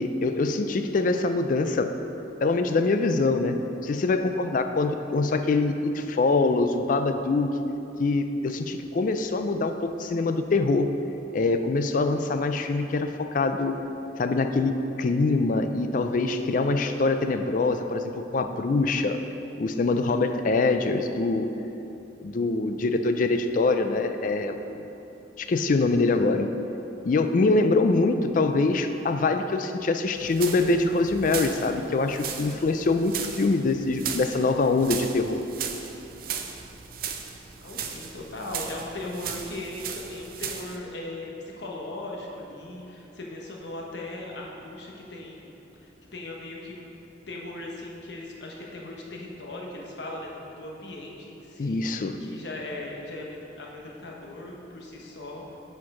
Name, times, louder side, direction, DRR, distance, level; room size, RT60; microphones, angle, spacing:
voice 1, 0.0-2.0 2.4-7.5 8.0-10.9 11.3-13.8 14.2-19.2 19.6-21.5 22.2-24.8 25.4-26.5 27.0-35.4 51.6-52.2, left 3 dB, 45° left, 8 dB, 0.4 m, -24 dB
sound 1, 30.2-40.8, right 7 dB, 50° right, 0.5 m, -37 dB
voice 2, 37.6-41.3 41.6-45.6 45.8-46.9 47.3-51.8 52.2-55.6, left 2 dB, 65° left, -1 dB, 1.1 m, -38 dB
7.1 x 4.4 x 6.0 m, 3.0 s
head